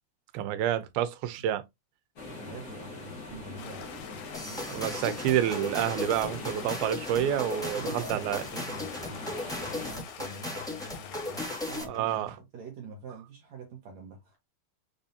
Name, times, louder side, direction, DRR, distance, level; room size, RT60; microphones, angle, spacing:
voice 1, 0.3-1.6 4.7-8.4 11.9-12.3, right 11 dB, 85° right, 2.6 m, -28 dB
sound 1, 2.2-9.9, left 2 dB, 65° left, 1.0 m, -42 dB
voice 2, 2.4-4.8 7.7-14.5, right 3 dB, 65° right, 1.8 m, -45 dB
Stream, 3.6-11.8, left 8 dB, 85° left, 1.6 m, -45 dB
sound 2, 4.3-12.0, left 1 dB, 5° left, 0.4 m, -37 dB
6.9 x 2.7 x 2.5 m
omnidirectional pair, 4.3 m